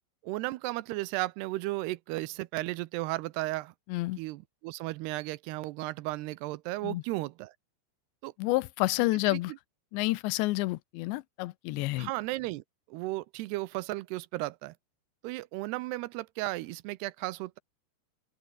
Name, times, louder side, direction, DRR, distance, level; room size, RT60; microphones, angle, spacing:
voice 1, 0.2-3.7 4.2-7.5 8.2-8.3 9.3-9.4 12.0-12.6 12.9-14.7 15.2-17.6, right 19 dB, 80° right, 2.6 m, -34 dB
voice 2, 8.4-9.5 9.9-12.1, left 20 dB, 85° left, 3.0 m, -29 dB
open air
omnidirectional pair, 5.1 m